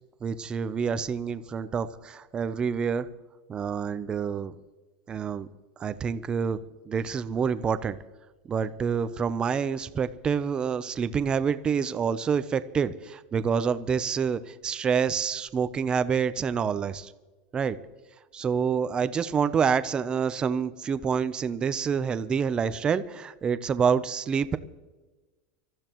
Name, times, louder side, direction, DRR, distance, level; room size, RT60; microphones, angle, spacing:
voice 1, 0.2-3.1 3.5-4.6 5.1-5.5 5.8-6.6 6.9-8.0 8.5-17.1 17.5-17.8 18.3-24.6, right 6 dB, 20° right, 13 dB, 0.6 m, -27 dB
26.0 x 14.0 x 3.1 m, 1.2 s
supercardioid pair, 155°, 5 cm